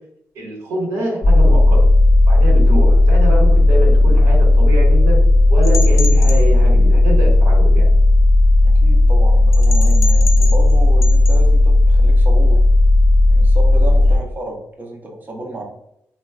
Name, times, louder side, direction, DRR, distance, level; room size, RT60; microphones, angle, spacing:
voice 1, 0.3-1.9 2.3-5.2 5.5-7.9, right 1 dB, 85° right, -3 dB, 1.0 m, -25 dB
sound 1, 1.2-14.2, left 2 dB, 20° left, 0.4 m, -12 dB
sound 2, 5.6-6.4 9.5-10.7 11.0-11.4, left 5 dB, 70° left, 0.6 m, -28 dB
voice 2, 8.6-12.6 13.3-15.6, right 1 dB, 35° right, 0 dB, 0.7 m, -32 dB
3.1 x 2.2 x 2.2 m, 0.80 s
supercardioid pair, 55°, 6 cm